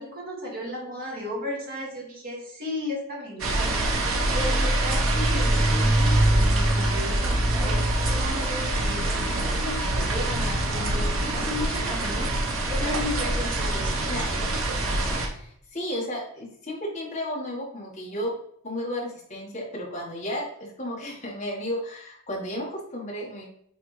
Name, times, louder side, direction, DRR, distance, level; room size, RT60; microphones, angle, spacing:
voice 1, 0.0-3.9 4.3-12.3 12.7-14.1, left 1 dB, 40° right, -4 dB, 2.2 m, -35 dB
sound 1, 3.4-15.3, right 1 dB, 70° right, 1.1 m, -24 dB
voice 2, 14.1-14.5 14.8-18.3 18.6-23.5, equal, 30° left, -3 dB, 1.6 m, -33 dB
8.5 x 3.5 x 3.3 m, 0.67 s
head